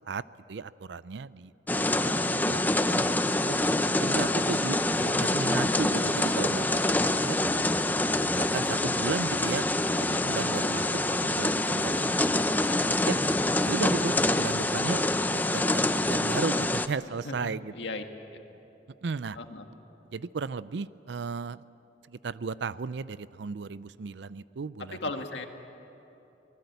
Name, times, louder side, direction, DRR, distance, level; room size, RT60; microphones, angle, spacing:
voice 1, 0.5-3.6 4.0-7.4 8.3-9.7 10.1-13.2 13.6-15.0 15.3-17.7 19.0-19.4 20.1-21.6 22.1-25.0, right 4 dB, 70° right, 17 dB, 0.5 m, -35 dB
sound 1, 1.7-16.9, left 1 dB, 10° left, 0.7 m, -26 dB
Guitar, 6.9-14.8, equal, 20° right, 2.1 m, -50 dB
voice 2, 9.9-10.3 17.2-18.0 18.3-18.6 19.3-19.6 25.0-25.5, left 2 dB, 75° left, 5 dB, 1.8 m, -37 dB
24.5 x 20.0 x 8.1 m, 3.0 s
head